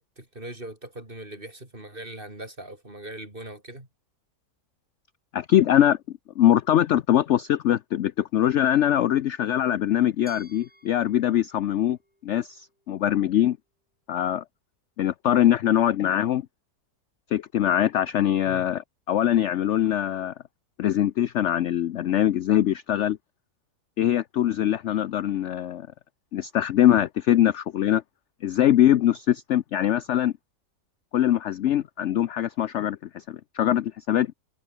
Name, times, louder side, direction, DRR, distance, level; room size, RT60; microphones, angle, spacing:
voice 1, 0.0-3.9 18.5-18.7, right 1 dB, 30° right, 5.5 m, -40 dB
voice 2, 5.3-6.0 6.4-12.0 12.2-13.6 14.1-14.4 15.0-16.4 17.3-18.8 19.1-20.3 20.8-23.2 24.0-25.9 26.3-28.0 28.4-30.3 31.1-34.3, left 11 dB, 60° left, 0.8 m, -22 dB
Glass, 10.3-13.2, equal, 5° right, 6.6 m, -56 dB
omnidirectional pair, 1.7 m